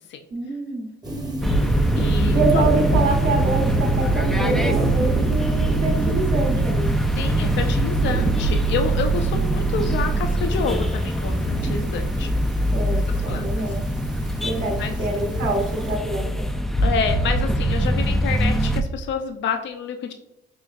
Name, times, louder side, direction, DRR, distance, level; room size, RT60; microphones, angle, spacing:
voice 1, 0.3-0.9 2.3-6.9 12.7-13.8 14.4-16.5, right 2 dB, 60° right, -2 dB, 1.1 m, -26 dB
sound 1, 1.0-16.0, right 1 dB, 20° right, 0.9 m, -29 dB
sound 2, 1.4-18.8, right 1 dB, ahead, 0.3 m, -23 dB
voice 2, 2.0-2.4 7.2-12.3 13.3-13.6 14.3-14.5 14.8-14.9 16.8-20.1, left 6 dB, 65° left, 6 dB, 0.5 m, -28 dB
4.9 x 3.0 x 2.4 m, 0.85 s
cardioid pair, 90°, 20 cm